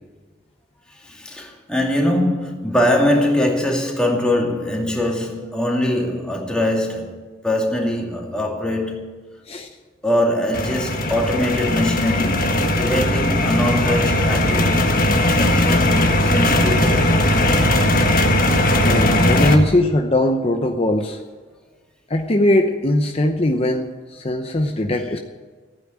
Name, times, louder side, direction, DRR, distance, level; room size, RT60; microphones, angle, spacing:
voice 1, 0.9-9.1 10.0-17.3 19.4-19.7, left 1 dB, 5° left, 2.4 m, -22 dB
sound 1, 10.5-19.5, left 1 dB, 50° left, 1.6 m, -18 dB
voice 2, 18.8-21.2 22.1-25.2, left 1 dB, 35° left, 0.8 m, -20 dB
15.5 x 9.4 x 8.9 m
head